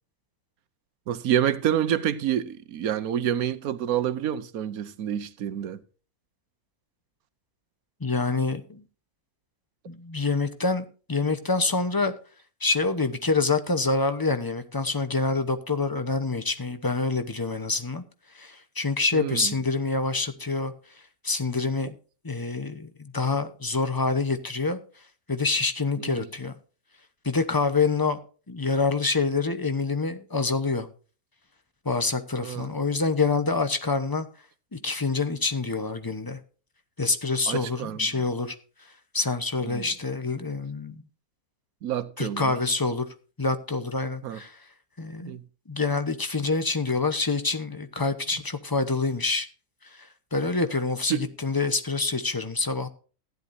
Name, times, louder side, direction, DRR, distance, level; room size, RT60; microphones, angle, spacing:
voice 1, 1.1-5.8 19.1-19.5 26.0-26.3 32.4-32.7 37.5-38.1 39.6-39.9 41.8-42.6 44.2-44.4 45.3-45.4 51.1-51.2, right 10 dB, 80° right, 1.2 m, -28 dB
voice 2, 8.0-8.8 9.9-12.1 12.6-18.0 18.3-20.7 21.2-21.9 22.2-24.8 25.3-26.5 27.2-28.2 28.5-30.9 31.8-34.3 34.7-36.4 37.0-38.5 39.1-41.0 42.2-43.1 43.4-44.6 45.0-45.4 45.7-49.5 50.0-52.9, left 3 dB, 20° left, 0.8 m, -26 dB
15.5 x 10.5 x 2.7 m
omnidirectional pair, 1.5 m